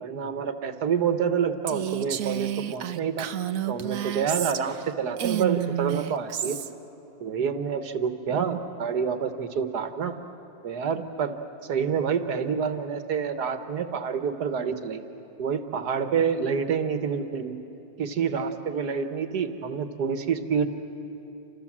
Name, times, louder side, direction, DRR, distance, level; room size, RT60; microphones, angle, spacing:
voice 1, 0.0-3.3 3.7-6.6 7.2-10.2 10.6-11.3 11.7-15.0 15.4-17.6 18.0-20.7, right 6 dB, 85° right, 9 dB, 1.8 m, -27 dB
Female speech woman speaking, 1.7-4.9 5.2-6.7, right 11 dB, 65° right, 1.1 m, -30 dB
29.5 x 26.5 x 7.4 m, 2.9 s
omnidirectional pair, 1.7 m